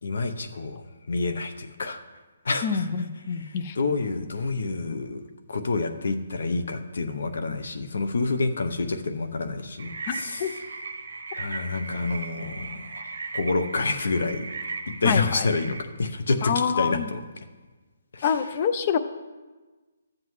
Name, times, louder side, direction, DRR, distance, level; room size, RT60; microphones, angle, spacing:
voice 1, 0.0-2.0 2.4-2.9 3.3-5.2 5.5-10.6 11.3-14.5 15.0-17.4 18.1-18.5, left 3 dB, 65° left, 8 dB, 0.7 m, -28 dB
voice 2, 2.6-3.8 10.1-10.5 15.0-15.5 16.4-17.1 18.2-19.0, left 7 dB, 25° left, 11 dB, 0.4 m, -26 dB
sound 1, 9.8-15.8, right 4 dB, 70° right, 0.9 m, -37 dB
13.0 x 7.5 x 3.1 m, 1.3 s
hypercardioid pair, 180°, 0 cm